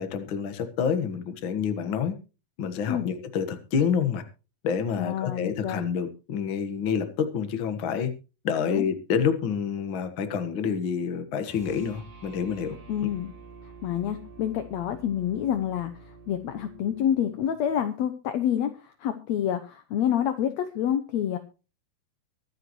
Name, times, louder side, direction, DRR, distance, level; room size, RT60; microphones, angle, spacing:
voice 1, 0.0-2.1 2.6-4.2 4.6-8.1 8.4-13.1, left 7 dB, 50° left, 9 dB, 1.5 m, -28 dB
voice 2, 5.0-5.8 8.7-8.8 12.9-13.3 13.8-15.9 16.3-21.4, left 10 dB, 75° left, 9 dB, 1.6 m, -28 dB
sound 1, 11.4-17.8, right 3 dB, 65° right, 8.0 m, -48 dB
24.0 x 8.2 x 3.1 m, 0.32 s
omnidirectional pair, 4.3 m